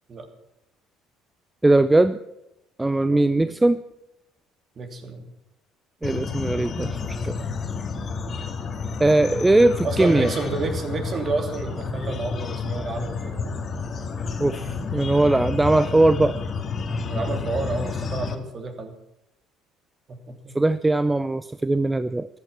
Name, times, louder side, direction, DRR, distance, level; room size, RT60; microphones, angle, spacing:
voice 1, 1.6-2.2 2.8-3.8 6.0-7.4 9.0-10.3 14.4-16.4 20.5-22.3, right 2 dB, 15° right, 13 dB, 0.6 m, -20 dB
voice 2, 3.1-3.5 4.8-5.3 9.8-13.5 17.1-18.9 20.1-20.6, right 3 dB, 45° right, 5 dB, 3.0 m, -30 dB
sound 1, 6.0-18.3, left 4 dB, 40° left, 1.8 m, -30 dB
14.0 x 12.0 x 5.9 m, 0.86 s
hypercardioid pair, 65°, 0 cm